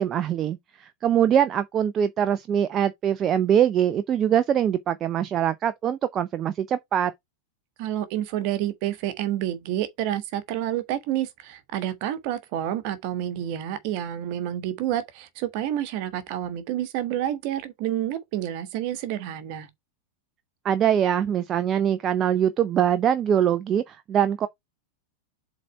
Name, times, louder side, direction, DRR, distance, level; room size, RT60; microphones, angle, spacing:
voice 1, 0.0-7.1 20.6-24.5, right 9 dB, 30° right, 0.6 m, -23 dB
voice 2, 7.8-19.7, right 12 dB, 45° right, 1.5 m, -29 dB
7.4 x 4.1 x 4.5 m
figure-of-eight pair, 90°, 0 cm